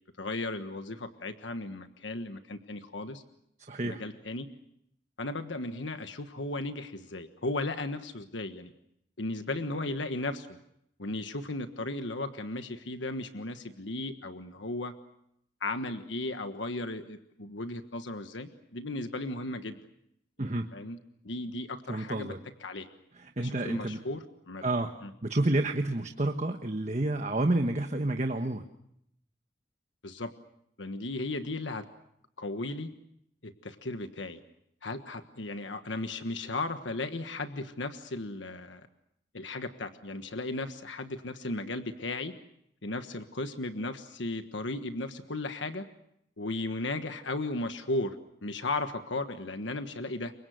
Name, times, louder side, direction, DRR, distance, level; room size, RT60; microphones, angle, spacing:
voice 1, 0.2-3.2 3.8-4.5 5.2-8.7 9.2-10.5 11.0-14.9 15.6-19.8 20.4-21.0 21.2-22.3 22.6-22.9 23.4-24.6 25.0-25.1 30.0-30.3 30.8-31.8 32.4-32.9 33.4-34.4 34.8-38.9 39.3-42.3 42.8-45.9 46.4-50.3, left 2 dB, 80° left, 8 dB, 1.4 m, -35 dB
voice 2, 3.7-4.0 20.4-20.7 21.9-22.4 23.1-24.0 24.6-24.9 25.2-28.6, right 2 dB, 40° right, 6 dB, 1.3 m, -29 dB
29.5 x 24.0 x 6.4 m, 0.76 s
head